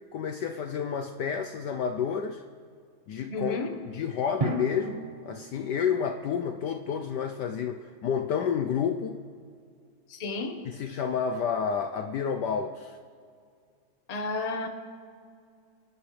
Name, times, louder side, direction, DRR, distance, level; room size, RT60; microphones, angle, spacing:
voice 1, 0.1-2.4 3.1-3.6 3.9-9.2 10.7-13.0, left 7 dB, 70° left, 6 dB, 1.1 m, -30 dB
voice 2, 3.3-3.8 10.1-10.6 14.1-14.7, left 3 dB, 30° left, 4 dB, 0.8 m, -32 dB
Drum, 4.4-6.2, right 3 dB, 50° right, 0.4 m, -34 dB
27.5 x 11.0 x 3.3 m, 2.2 s
omnidirectional pair, 2.3 m